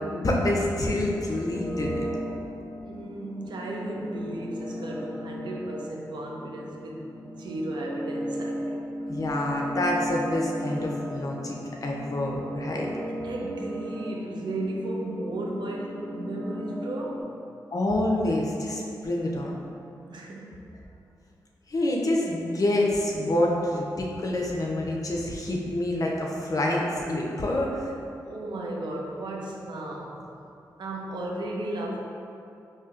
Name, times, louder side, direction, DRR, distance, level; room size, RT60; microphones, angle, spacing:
voice 1, 0.1-2.0 9.1-12.9 17.7-19.6 21.7-27.9, left 1 dB, 45° left, -2 dB, 0.6 m, -27 dB
sound 1, 1.0-17.2, equal, 10° left, 1.0 m, -36 dB
voice 2, 2.8-8.8 13.2-17.3 20.1-20.6 28.2-30.3 30.8-32.0, right 1 dB, 70° right, -1 dB, 0.5 m, -34 dB
4.4 x 2.7 x 2.4 m, 2.7 s
cardioid pair, 50°, 8 cm